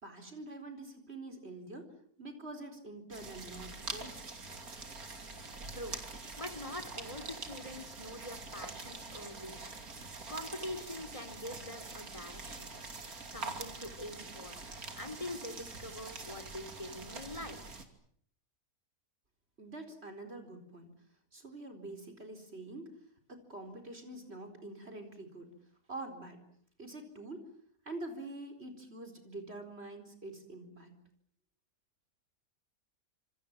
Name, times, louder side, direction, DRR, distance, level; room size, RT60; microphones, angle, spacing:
voice 1, 0.0-4.2 19.6-20.9 21.3-23.0 23.3-25.5 25.9-26.4 26.8-27.5 27.8-31.0, right 2 dB, 40° right, 5 dB, 4.6 m, -46 dB
sound 1, 3.1-17.9, right 3 dB, 70° right, 3.3 m, -45 dB
voice 2, 6.4-9.6 10.3-12.7 13.3-14.6 15.0-17.7, left 1 dB, 20° left, 6 dB, 3.2 m, -44 dB
27.0 x 26.0 x 7.4 m, 0.65 s
omnidirectional pair, 1.6 m